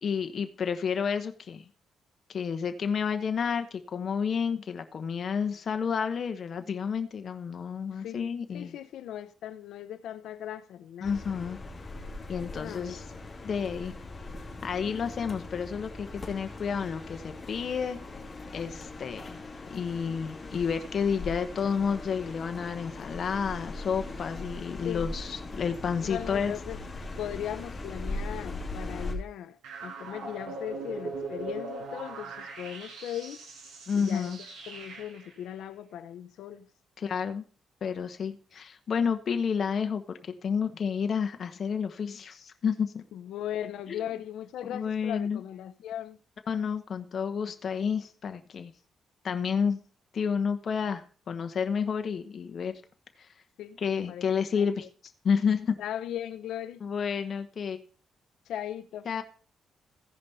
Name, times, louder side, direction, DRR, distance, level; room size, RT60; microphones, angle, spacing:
voice 1, 0.0-1.7 2.3-8.8 11.0-11.6 12.3-13.0 13.4-13.9 14.6-18.0 18.5-19.4 19.7-26.5 33.9-34.4 37.0-37.4 37.8-43.0 44.6-45.4 46.5-48.7 49.2-49.8 50.1-52.8 53.2-53.3 53.8-54.9 55.2-55.8 56.8-57.8 59.0-59.2, left 6 dB, 50° left, 1.1 m, -30 dB
voice 2, 7.9-8.3 8.5-11.3 12.6-13.0 24.8-25.1 26.0-26.8 27.2-33.4 33.9-36.7 43.1-46.2 53.6-54.3 54.6-54.7 55.8-56.8 58.5-59.1, left 10 dB, 85° left, 0.7 m, -38 dB
sound 1, 11.0-29.1, left 2 dB, 30° left, 2.6 m, -40 dB
sound 2, 29.6-35.3, right 3 dB, 90° right, 3.0 m, -40 dB
15.5 x 5.3 x 4.2 m
cardioid pair, 95°, 0 cm